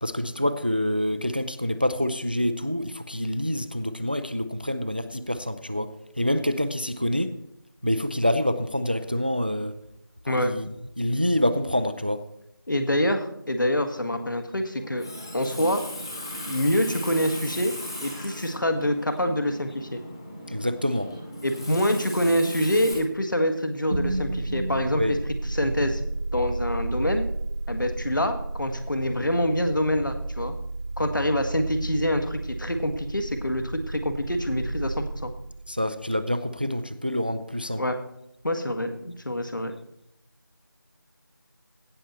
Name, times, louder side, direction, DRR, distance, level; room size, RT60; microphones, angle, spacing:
voice 1, 0.0-7.4 7.8-9.8 10.2-10.7 11.0-12.2 20.5-21.1 24.9-25.2 35.7-37.8, left 1 dB, 25° right, 12 dB, 0.4 m, -26 dB
voice 2, 12.7-15.1 15.3-15.8 16.5-17.7 18.0-20.0 21.4-25.2 25.5-26.0 26.3-27.3 27.7-30.5 31.0-35.3 37.8-38.0 38.4-39.7, left 1 dB, 60° left, 7 dB, 1.8 m, -26 dB
Water tap faucet, 14.8-22.9, left 1 dB, 10° left, 1.2 m, -38 dB
sound 1, 23.9-36.0, right 2 dB, 45° right, 1.0 m, -32 dB
16.5 x 6.5 x 4.3 m, 0.78 s
figure-of-eight pair, 170°, 12 cm